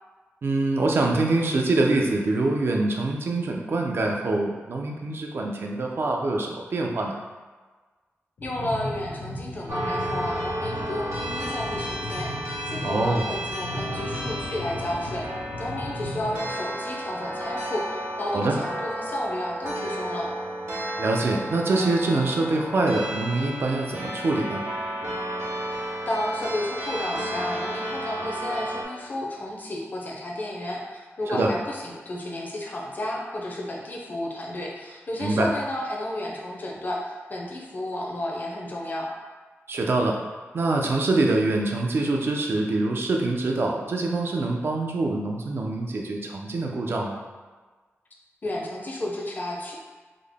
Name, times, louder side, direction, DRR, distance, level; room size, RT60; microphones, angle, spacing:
voice 1, 0.4-7.2 12.8-13.3 18.3-18.6 21.0-24.6 31.3-31.5 35.2-35.5 39.7-40.2 40.5-47.2, right 2 dB, 55° right, 1 dB, 0.4 m, -25 dB
sound 1, 8.4-16.4, left 1 dB, 85° left, 1.1 m, -36 dB
voice 2, 8.4-15.3 15.6-20.3 26.1-39.1 48.4-49.7, left 1 dB, 40° left, -1 dB, 0.5 m, -32 dB
sound 2, 9.7-28.8, equal, 85° right, 0.9 m, -33 dB
3.7 x 2.0 x 3.4 m, 1.3 s
wide cardioid pair, 140°, 5 cm